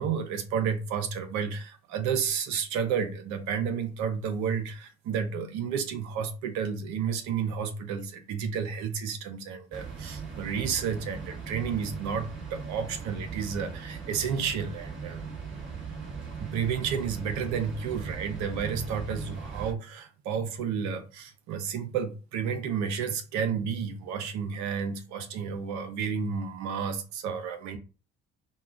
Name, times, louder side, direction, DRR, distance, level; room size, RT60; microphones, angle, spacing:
voice 1, 0.0-15.2 16.4-27.8, right 7 dB, 65° right, 0.9 m, -31 dB
sound 1, 9.7-19.7, right 5 dB, 40° right, 1.9 m, -39 dB
5.2 x 2.3 x 2.5 m
hypercardioid pair, 55°, 31 cm